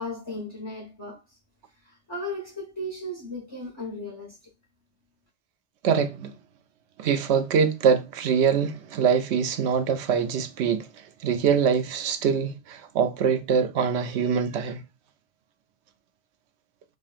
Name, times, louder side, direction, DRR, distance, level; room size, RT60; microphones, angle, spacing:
voice 1, 0.0-1.4 1.8-4.4, left 1 dB, 25° left, 1.0 m, -36 dB
voice 2, 5.8-6.3 7.0-14.8, right 6 dB, 75° right, 0.9 m, -24 dB
6.1 x 2.3 x 2.4 m
omnidirectional pair, 1.1 m